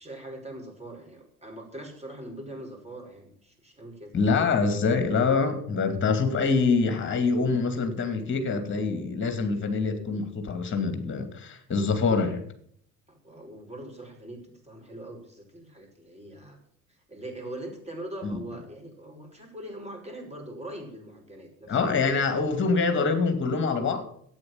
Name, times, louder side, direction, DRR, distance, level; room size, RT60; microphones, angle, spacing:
voice 1, 0.0-4.1 13.1-16.6 16.9-21.8, right 1 dB, 15° right, 2 dB, 5.4 m, -42 dB
voice 2, 4.1-12.4 18.2-18.4 21.7-24.0, left 4 dB, 25° left, 8 dB, 2.5 m, -25 dB
12.5 x 8.9 x 7.4 m, 0.67 s
figure-of-eight pair, 60°, 43 cm